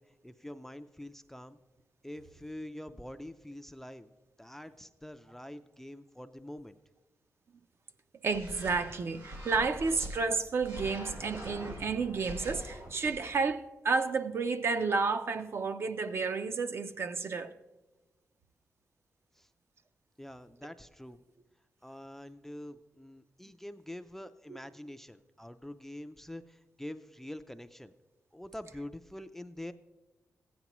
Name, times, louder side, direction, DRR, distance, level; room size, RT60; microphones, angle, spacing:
voice 1, 0.0-1.6 2.0-4.1 4.4-6.8 19.3-19.5 20.2-21.2 21.8-27.9 28.3-29.7, left 1 dB, 5° left, 0.3 m, -45 dB
voice 2, 8.2-17.5 24.5-24.6, right 4 dB, 50° right, 0.5 m, -31 dB
sound 1, 8.3-10.2 10.6-13.3, equal, 75° right, 2.6 m, -43 dB
15.5 x 9.4 x 3.0 m
wide cardioid pair, 125°, 5 cm